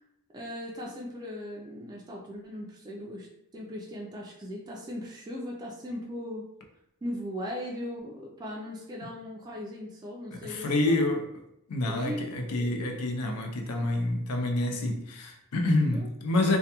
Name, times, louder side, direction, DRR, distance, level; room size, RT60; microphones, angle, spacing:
voice 1, 0.3-3.3 3.5-6.5 7.0-11.0 11.9-12.2 12.5-12.7 15.9-16.1, equal, 20° right, 0.3 m, -38 dB
voice 2, 10.3-11.3 11.7-16.6, left 2 dB, 85° left, 0.5 m, -27 dB
2.2 x 2.2 x 2.8 m
head